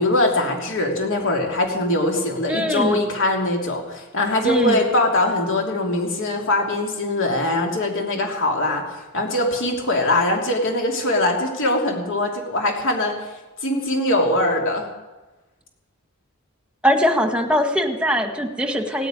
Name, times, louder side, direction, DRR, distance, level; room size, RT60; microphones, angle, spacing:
voice 1, 0.0-13.1 13.6-14.9, left 1 dB, 65° left, 1 dB, 3.1 m, -22 dB
voice 2, 2.5-3.0 4.4-4.8 16.8-19.1, equal, 5° right, 5 dB, 1.5 m, -21 dB
17.0 x 9.3 x 9.2 m, 1.2 s
head